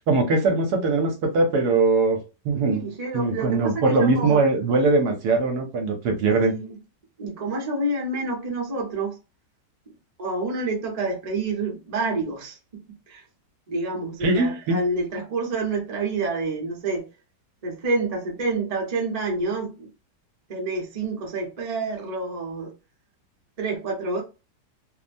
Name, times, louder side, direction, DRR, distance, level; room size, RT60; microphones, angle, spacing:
voice 1, 0.1-2.2 2.4-2.8 3.1-6.5 14.2-14.8, right 3 dB, 70° right, 1.1 m, -21 dB
voice 2, 2.7-4.4 6.4-6.8 7.2-9.2 10.2-12.8 13.1-13.2 13.7-17.1 17.6-19.9 20.5-22.7 23.6-24.2, right 3 dB, 35° right, 0.6 m, -28 dB
3.1 x 2.1 x 2.5 m
omnidirectional pair, 1.9 m